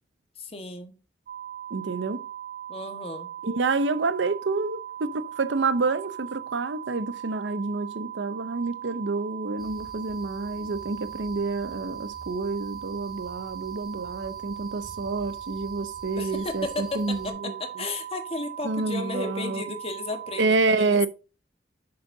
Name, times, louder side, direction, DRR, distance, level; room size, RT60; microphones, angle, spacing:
voice 1, 0.4-1.0 2.7-3.3 16.2-21.1, left 3 dB, 35° left, 1.4 m, -34 dB
sound 1, 1.3-20.5, right 11 dB, 45° right, 0.5 m, -39 dB
voice 2, 1.7-2.3 3.4-17.5 18.6-19.6 20.4-21.1, right 3 dB, 85° right, 0.7 m, -28 dB
sound 2, 9.6-17.3, right 1 dB, ahead, 2.5 m, -49 dB
9.0 x 6.8 x 2.7 m
head